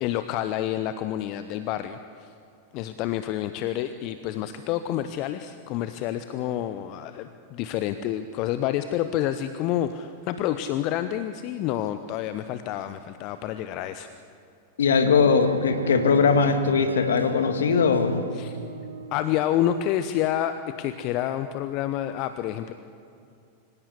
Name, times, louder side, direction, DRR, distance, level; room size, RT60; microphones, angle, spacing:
voice 1, 0.0-2.3 2.7-14.1 18.3-18.5 19.1-22.7, left 11 dB, 40° left, 11 dB, 0.8 m, -28 dB
voice 2, 14.8-18.2, left 5 dB, 65° left, 8 dB, 2.0 m, -20 dB
sound 1, 15.2-19.3, right 1 dB, 85° right, 1.6 m, -36 dB
25.0 x 17.0 x 8.2 m, 2.6 s
figure-of-eight pair, 90°, 0 cm